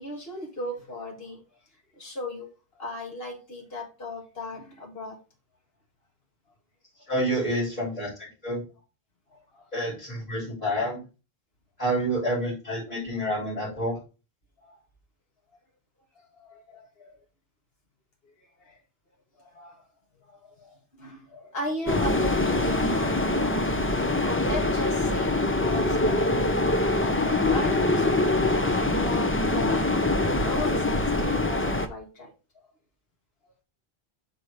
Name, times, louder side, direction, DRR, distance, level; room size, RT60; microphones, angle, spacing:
voice 1, 0.0-1.4 2.0-2.5 2.8-5.2 9.3-9.7 14.6-14.8 16.3-17.1 18.6-18.8 19.4-19.8 20.3-26.6 27.0-29.8 30.2-32.3, left 1 dB, 70° left, 2.0 m, -37 dB
voice 2, 7.1-8.6 9.7-11.0 11.8-14.0, right 1 dB, 40° left, 4.8 m, -28 dB
sound 1, 21.9-31.9, left 2 dB, 15° left, 0.4 m, -24 dB
6.2 x 4.3 x 4.9 m
omnidirectional pair, 1.0 m